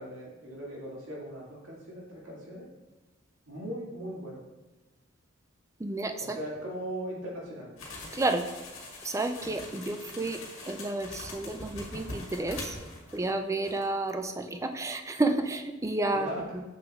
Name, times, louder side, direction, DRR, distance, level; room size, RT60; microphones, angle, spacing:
voice 1, 0.0-2.7 3.5-4.4 6.2-7.7 16.1-16.4, equal, 80° right, -4 dB, 2.1 m, -39 dB
voice 2, 5.8-6.4 8.1-8.5 9.0-12.8 13.1-16.6, right 2 dB, 15° right, 7 dB, 0.4 m, -31 dB
sound 1, 7.8-13.4 13.6-13.8, left 2 dB, 75° left, 1.6 m, -43 dB
7.0 x 6.6 x 2.4 m, 1.1 s
head